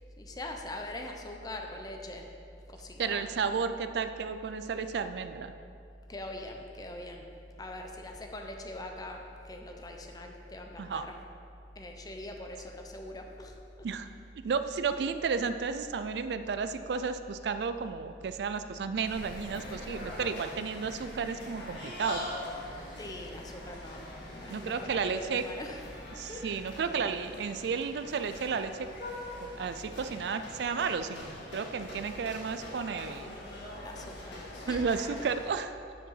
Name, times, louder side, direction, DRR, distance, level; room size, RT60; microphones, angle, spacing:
voice 1, 0.2-2.3 2.7-3.6 6.1-7.3 7.6-11.1 11.8-13.5 23.0-25.8 26.3-26.4 33.8-34.4 34.7-34.9, left 1 dB, 20° left, 3 dB, 0.6 m, -42 dB
voice 2, 3.0-5.5 10.8-11.1 13.8-14.1 14.4-22.3 24.5-25.4 26.2-28.9 29.4-33.4 34.7-35.8, right 5 dB, 65° right, 10 dB, 0.4 m, -33 dB
sound 1, 19.0-35.5, left 1 dB, 85° left, 1.7 m, -43 dB
7.4 x 5.5 x 5.6 m, 2.5 s
head